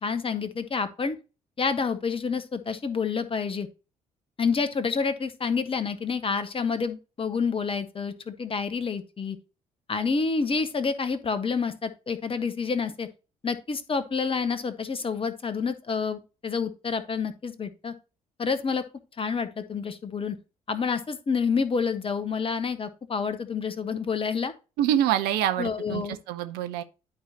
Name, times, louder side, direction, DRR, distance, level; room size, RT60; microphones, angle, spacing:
voice 1, 0.0-1.2 1.6-3.7 4.4-9.4 9.9-13.1 13.4-17.9 18.4-18.8 19.2-20.3 20.7-24.5 25.6-26.2, left 5 dB, 30° left, 1.2 m, -28 dB
voice 2, 24.8-26.8, right 11 dB, 60° right, 0.8 m, -26 dB
11.5 x 4.8 x 2.9 m
figure-of-eight pair, 45°, 19 cm